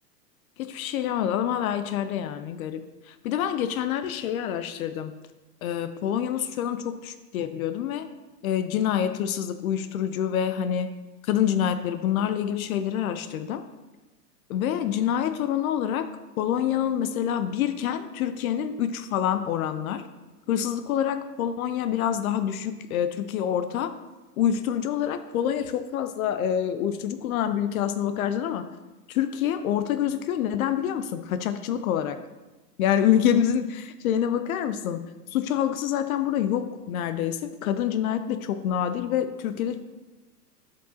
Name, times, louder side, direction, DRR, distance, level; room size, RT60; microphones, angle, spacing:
voice 1, 0.6-5.1 5.6-8.1 8.4-10.9 11.2-13.6 14.5-16.1 16.4-20.1 20.5-23.9 24.4-28.7 29.1-32.2 32.8-39.8, left 9 dB, 60° left, 10 dB, 0.6 m, -26 dB
9.9 x 5.3 x 2.8 m, 1.1 s
hypercardioid pair, 115°, 49 cm